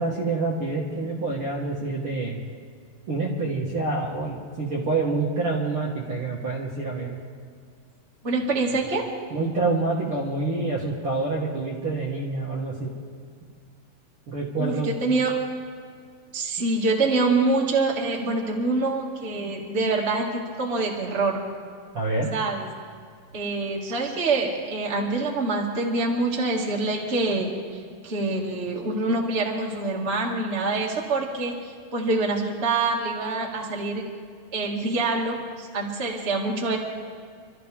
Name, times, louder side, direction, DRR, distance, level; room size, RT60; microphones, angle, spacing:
voice 1, 0.0-2.4 3.1-7.2 9.3-12.9 14.3-14.9 21.9-22.3, right 3 dB, 45° right, -5 dB, 2.1 m, -27 dB
voice 2, 8.2-9.0 14.6-15.3 16.3-21.4 22.3-22.7 23.3-34.0 34.5-36.8, right 3 dB, 20° right, -2 dB, 1.9 m, -25 dB
28.0 x 13.5 x 3.6 m, 2.2 s
omnidirectional pair, 4.4 m